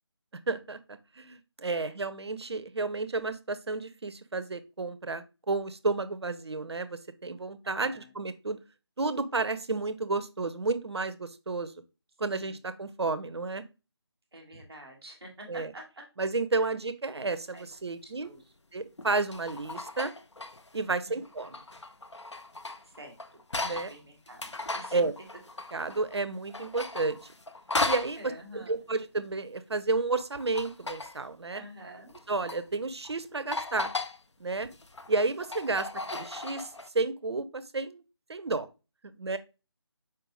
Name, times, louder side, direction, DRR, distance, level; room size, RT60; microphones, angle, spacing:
voice 1, 0.5-8.6 9.0-11.7 12.2-13.6 15.5-15.7 16.2-18.3 18.7-20.1 20.7-21.6 23.6-23.9 24.9-25.1 25.7-27.2 27.8-31.6 32.3-33.9 34.4-34.7 35.1-36.7 36.9-38.0 38.3-38.7 39.2-39.4, right 3 dB, 70° right, 13 dB, 0.4 m, -31 dB
voice 2, 1.7-2.0 7.6-8.1 12.4-12.6 14.3-15.8 17.5-17.7 18.0-18.5 20.9-21.3 22.9-23.2 23.6-25.1 25.6-25.7 28.2-28.8 31.5-32.1 35.8-36.1, right 1 dB, 5° right, -11 dB, 0.4 m, -48 dB
sound 1, 17.6-17.7 19.0-20.8 21.2-23.9 24.3-26.2 26.5-28.2 30.2-31.2 32.1-32.6 33.0-33.2 33.5-34.2 34.6-36.9, left 2 dB, 85° left, 0.5 m, -36 dB
4.5 x 2.5 x 3.0 m, 0.29 s
figure-of-eight pair, 160°, 14 cm